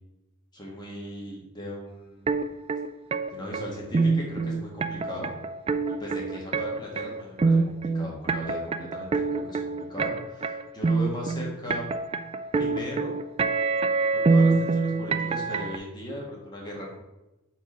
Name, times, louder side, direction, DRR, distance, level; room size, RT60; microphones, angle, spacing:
voice 1, 0.5-2.5 3.3-5.3 6.0-11.8 12.5-13.2 14.1-17.0, equal, 20° left, -3 dB, 1.7 m, -38 dB
sound 1, 2.3-15.8, right 4 dB, 25° right, 0.3 m, -25 dB
6.9 x 4.6 x 4.4 m, 1.0 s
head